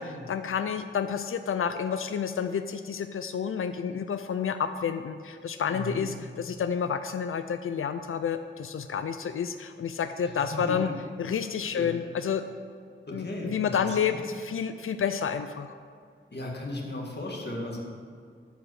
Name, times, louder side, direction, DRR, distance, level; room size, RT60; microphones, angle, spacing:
voice 1, 0.0-10.9 11.2-12.5 13.1-15.7, left 7 dB, 85° left, 9 dB, 0.4 m, -30 dB
voice 2, 5.7-6.1 10.2-10.9 11.7-11.9 13.1-14.2 16.3-17.8, left 1 dB, 55° left, -1 dB, 2.0 m, -36 dB
12.5 x 5.0 x 6.4 m, 2.2 s
wide cardioid pair, 85°, 21 cm